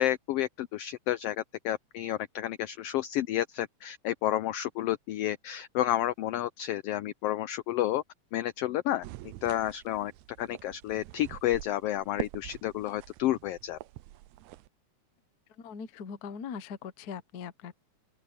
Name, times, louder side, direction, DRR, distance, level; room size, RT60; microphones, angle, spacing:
voice 1, 0.0-8.0 8.3-9.0 9.4-10.1 10.4-13.8, left 13 dB, 85° left, 1.3 m, -30 dB
sound 1, 9.0-14.7, right 16 dB, 85° right, 2.0 m, -44 dB
voice 2, 15.5-17.7, left 6 dB, 65° left, 0.9 m, -41 dB
open air
omnidirectional pair, 3.3 m